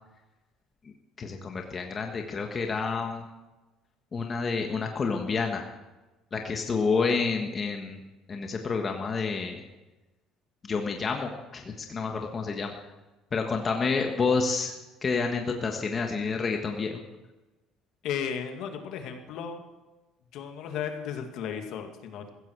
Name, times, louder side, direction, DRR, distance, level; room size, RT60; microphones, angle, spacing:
voice 1, 1.2-3.2 4.1-5.6 6.3-8.0 8.3-9.6 10.7-12.7 13.3-14.7 15.0-17.0, left 4 dB, 25° left, 3 dB, 1.4 m, -29 dB
voice 2, 18.0-19.6 20.3-22.3, left 8 dB, 65° left, 5 dB, 2.2 m, -34 dB
15.5 x 14.5 x 4.7 m, 1.1 s
cardioid pair, 150°, 0 cm